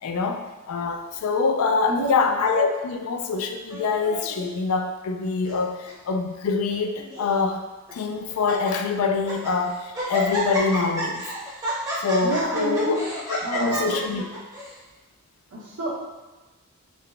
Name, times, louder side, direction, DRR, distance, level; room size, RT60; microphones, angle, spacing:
voice 1, 0.0-7.6 7.9-11.3 12.0-14.4, left 4 dB, 75° left, 6 dB, 0.3 m, -25 dB
voice 2, 1.9-2.4 12.2-12.9 13.4-13.9 15.5-15.9, right 1 dB, 75° right, -5 dB, 0.9 m, -28 dB
Laughter, 3.7-4.5 5.2-5.6 5.9-6.0 6.7-7.3 7.9-8.0 8.3-8.7 9.1-9.6 9.9-14.7, right 1 dB, 15° right, 0.7 m, -31 dB
3.8 x 2.1 x 3.4 m, 1.2 s
head